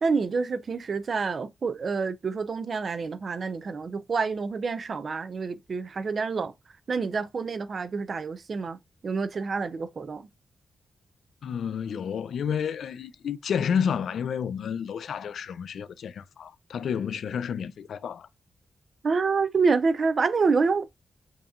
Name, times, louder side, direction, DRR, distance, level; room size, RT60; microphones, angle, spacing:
voice 1, 0.0-6.5 6.9-8.8 9.0-10.3 19.0-20.8, right 4 dB, 45° right, 0.5 m, -27 dB
voice 2, 11.4-18.3, left 7 dB, 85° left, 0.3 m, -30 dB
7.1 x 2.9 x 2.4 m
wide cardioid pair, 165°, 0 cm